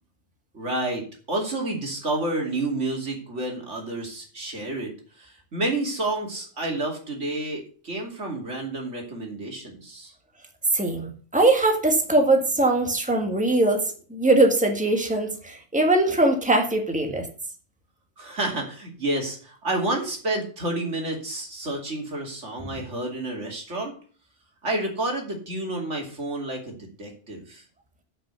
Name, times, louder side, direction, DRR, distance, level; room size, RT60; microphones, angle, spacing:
voice 1, 0.5-4.9 5.2-10.1 18.2-23.9 24.6-27.6, right 2 dB, 85° right, 1 dB, 3.0 m, -30 dB
voice 2, 10.7-17.3, right 2 dB, 5° right, 3 dB, 1.6 m, -21 dB
9.1 x 6.1 x 6.8 m, 0.41 s
omnidirectional pair, 1.2 m